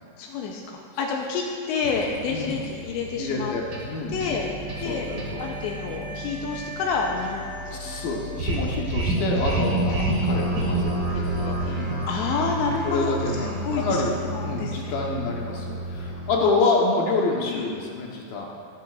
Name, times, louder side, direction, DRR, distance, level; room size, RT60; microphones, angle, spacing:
voice 1, 0.2-3.5 4.1-4.5 4.8-5.1 5.4-7.8 11.1-13.2 13.4-13.9 14.3-14.9 16.4-16.5 17.0-17.1 17.4-17.7, left 5 dB, 85° left, 0 dB, 2.9 m, -29 dB
sound 1, 1.8-16.3, right 2 dB, 80° right, 1.1 m, -30 dB
voice 2, 3.2-4.2 4.8-5.4 7.7-12.0 12.8-18.5, left 3 dB, 65° left, -2 dB, 2.5 m, -27 dB
22.5 x 9.1 x 2.5 m, 2.2 s
omnidirectional pair, 5.3 m